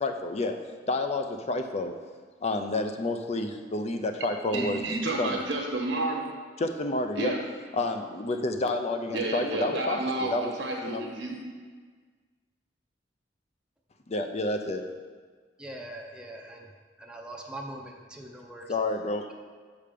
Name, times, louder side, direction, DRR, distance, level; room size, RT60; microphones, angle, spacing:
voice 1, 0.0-0.6 0.9-1.9 2.4-4.8 5.2-5.3 6.6-7.3 7.8-10.5 10.8-11.0 14.1-14.8 18.7-19.3, left 2 dB, 35° left, 6 dB, 0.5 m, -29 dB
voice 2, 4.5-6.3 7.1-7.4 9.1-11.4, right 2 dB, 75° right, 0 dB, 1.3 m, -30 dB
voice 3, 15.6-16.7 17.0-18.7, right 1 dB, 5° right, 0 dB, 0.6 m, -42 dB
6.7 x 5.0 x 5.1 m, 1.5 s
head